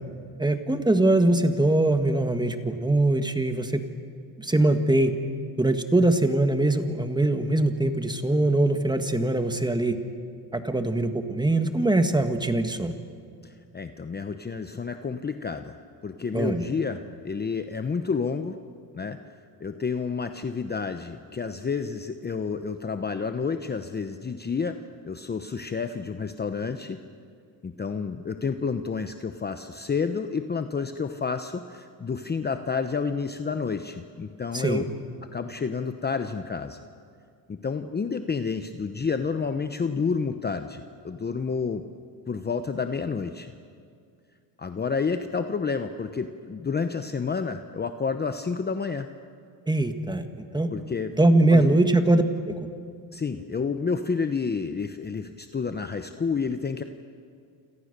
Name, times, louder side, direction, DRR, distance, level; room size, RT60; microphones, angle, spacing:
voice 1, 0.4-3.8 4.4-5.1 5.6-10.0 10.5-12.9 16.3-16.6 34.5-34.8 49.7-50.7 51.2-52.6, right 2 dB, 10° right, 7 dB, 1.8 m, -22 dB
voice 2, 13.4-15.7 16.0-18.6 18.9-19.2 19.6-24.8 25.0-27.0 27.6-34.8 35.3-36.8 37.5-41.8 42.3-43.5 44.6-49.1 50.7-51.1 51.5-51.8 53.1-56.8, left 5 dB, 20° left, 8 dB, 0.9 m, -30 dB
28.5 x 27.0 x 6.8 m, 2.3 s
cardioid pair, 115°, 46 cm